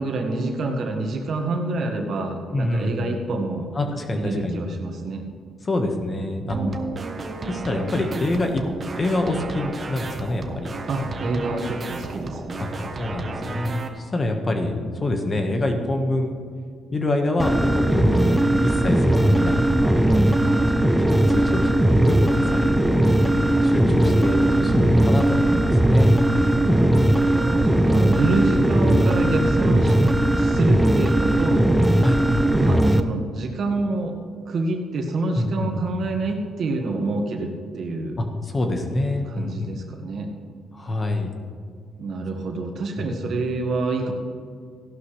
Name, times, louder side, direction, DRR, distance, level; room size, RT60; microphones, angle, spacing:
voice 1, 0.0-3.7 4.1-5.2 6.4-6.8 10.9-12.6 20.3-20.7 26.6-30.0 30.3-31.7 32.6-34.1 34.4-38.2 39.2-40.3 42.0-44.1, right 2 dB, 60° right, 3 dB, 1.7 m, -27 dB
voice 2, 2.5-3.1 3.7-4.6 5.6-6.6 7.5-8.6 9.0-10.8 11.0-11.1 12.6-12.7 13.0-16.4 16.9-18.2 18.6-20.1 21.3-23.0 23.6-26.6 32.0-32.2 35.4-35.8 38.2-39.7 40.7-41.3 43.0-43.3, left 2 dB, 30° left, 4 dB, 1.5 m, -26 dB
sound 1, 6.5-13.9, right 3 dB, 35° right, 1.2 m, -33 dB
sound 2, 17.4-33.0, right 1 dB, 5° right, 0.6 m, -18 dB
15.0 x 11.5 x 3.4 m, 2.2 s
cardioid pair, 90°, 0 cm